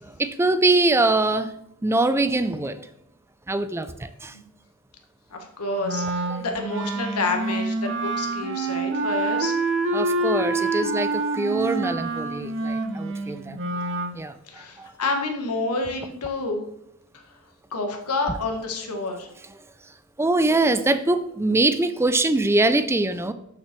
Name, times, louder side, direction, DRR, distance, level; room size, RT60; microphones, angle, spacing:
voice 1, 0.0-1.6 1.8-2.9 3.5-4.4 6.3-6.4 9.9-13.6 14.1-14.9 20.2-23.3, right 2 dB, 10° right, 12 dB, 0.4 m, -23 dB
voice 2, 5.3-9.5 13.5-13.8 14.5-16.6 17.1-17.2 17.7-19.3, left 3 dB, 85° left, 3 dB, 1.4 m, -29 dB
Wind instrument woodwind instrument, 5.8-14.1, right 3 dB, 55° right, 0.9 m, -27 dB
6.8 x 5.4 x 6.8 m, 0.76 s
head